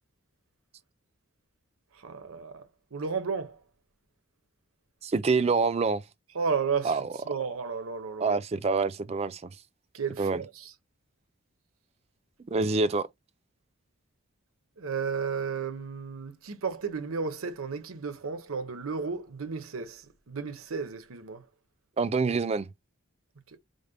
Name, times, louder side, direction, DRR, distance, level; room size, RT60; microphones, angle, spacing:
voice 1, 1.9-2.6 2.9-3.6 6.3-8.4 9.9-10.7 14.8-21.4 23.5-23.6, right 5 dB, 70° right, 0.8 m, -33 dB
voice 2, 5.0-6.0 6.8-7.1 8.2-9.5 10.2-10.4 12.5-13.1 22.0-22.7, right 4 dB, 30° right, 0.3 m, -26 dB
5.1 x 2.1 x 3.9 m
head